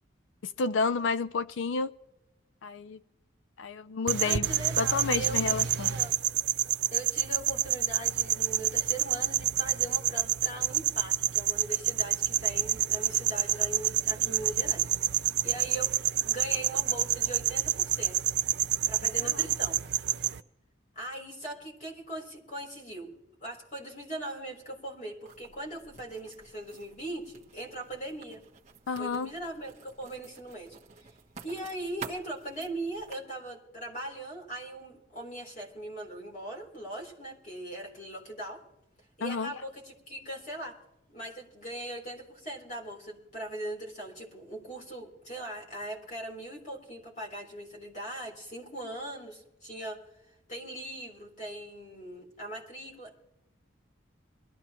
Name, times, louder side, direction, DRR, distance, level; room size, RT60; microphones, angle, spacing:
voice 1, 0.4-1.9 2.6-3.0 3.6-4.5 4.8-5.9 28.9-29.3 39.2-39.5, left 4 dB, 80° left, 0.5 m, -30 dB
sound 1, 4.1-20.4, right 11 dB, 60° right, 0.5 m, -28 dB
voice 2, 4.2-6.1 6.9-15.9 16.2-18.2 18.5-19.8 21.0-23.1 23.4-28.4 29.0-31.1 31.4-38.6 39.2-40.8 41.1-50.0 50.5-53.2, right 1 dB, 40° left, 3.9 m, -40 dB
Writing, 25.2-33.1, right 5 dB, 35° right, 1.1 m, -49 dB
22.5 x 13.5 x 3.0 m
head